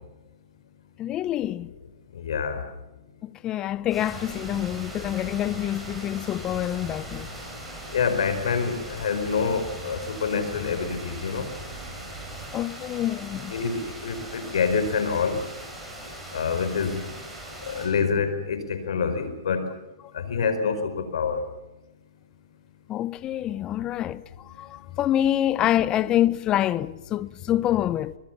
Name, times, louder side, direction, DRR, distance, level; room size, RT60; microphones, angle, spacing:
voice 1, 1.0-1.7 3.2-7.3 12.5-13.5 22.9-28.2, left 12 dB, 25° left, 0.7 m, -26 dB
voice 2, 2.2-2.6 7.9-11.5 13.5-15.4 16.3-17.0 17.7-19.6 20.1-21.4, left 5 dB, 75° left, 4.6 m, -26 dB
sound 1, 3.9-17.9, right 1 dB, 5° right, 7.7 m, -39 dB
24.5 x 21.5 x 7.2 m
hypercardioid pair, 140°, 3 cm